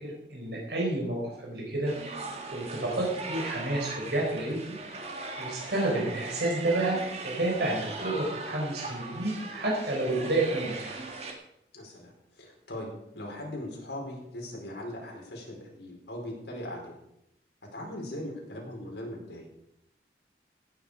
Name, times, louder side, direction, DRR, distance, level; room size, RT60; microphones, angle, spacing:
voice 1, 0.0-1.9 2.5-4.8 5.4-7.0 7.2-11.0, right 2 dB, 75° right, -2 dB, 4.4 m, -30 dB
sound 1, 1.9-11.3, right 3 dB, 35° right, 2.0 m, -39 dB
voice 2, 11.7-16.9 17.7-19.5, left 1 dB, 85° left, -1 dB, 4.8 m, -40 dB
16.5 x 10.0 x 5.1 m, 0.81 s
head